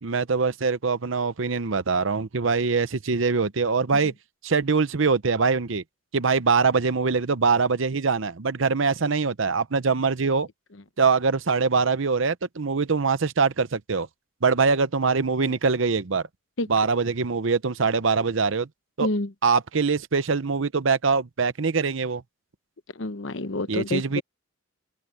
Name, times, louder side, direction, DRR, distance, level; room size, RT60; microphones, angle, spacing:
voice 1, 0.0-4.1 4.4-5.8 6.1-10.5 11.0-14.1 14.4-16.2 16.7-18.7 19.0-19.1 19.4-22.2 23.7-24.2, right 4 dB, 70° right, 0.8 m, -23 dB
voice 2, 19.0-19.3 22.9-24.2, left 2 dB, 65° left, 1.0 m, -28 dB
open air
head